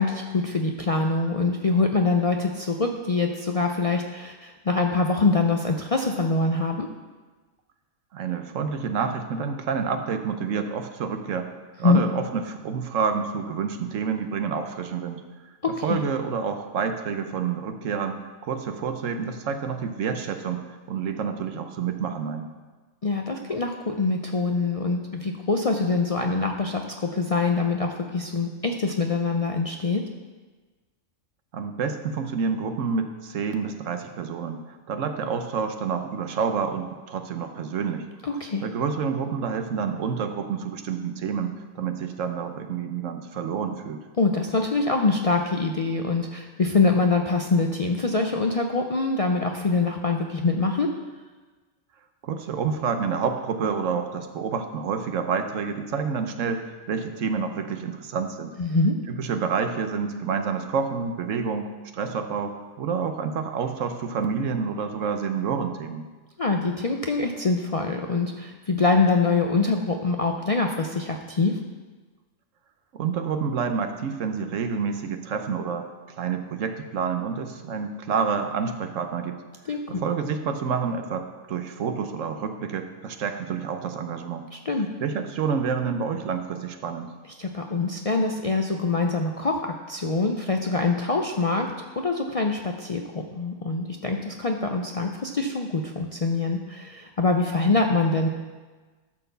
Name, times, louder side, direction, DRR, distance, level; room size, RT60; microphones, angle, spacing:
voice 1, 0.0-6.9 11.8-12.0 15.6-16.0 23.0-30.0 38.2-38.6 44.2-50.9 58.6-59.0 66.4-71.6 79.7-80.0 84.5-84.9 87.4-98.3, left 3 dB, 50° left, 3 dB, 0.4 m, -24 dB
voice 2, 8.1-11.5 11.8-15.2 15.8-22.5 31.5-34.6 34.9-38.0 38.6-44.1 52.2-58.5 59.1-66.1 72.9-75.9 76.2-79.4 79.9-84.5 85.0-87.1, right 6 dB, 80° right, 7 dB, 1.2 m, -28 dB
12.0 x 4.4 x 6.8 m, 1.3 s
omnidirectional pair, 1.3 m